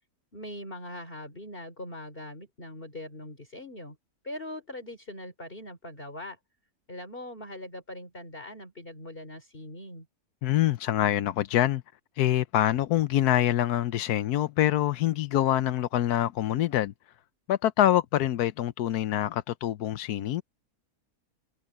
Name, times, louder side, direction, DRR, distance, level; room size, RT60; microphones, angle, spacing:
voice 1, 0.3-4.0 4.2-6.4 6.9-10.1, left 1 dB, 35° left, 3.7 m, -41 dB
voice 2, 10.4-11.8 12.2-16.9 17.5-20.4, left 13 dB, 90° left, 1.2 m, -25 dB
omnidirectional pair, 1.6 m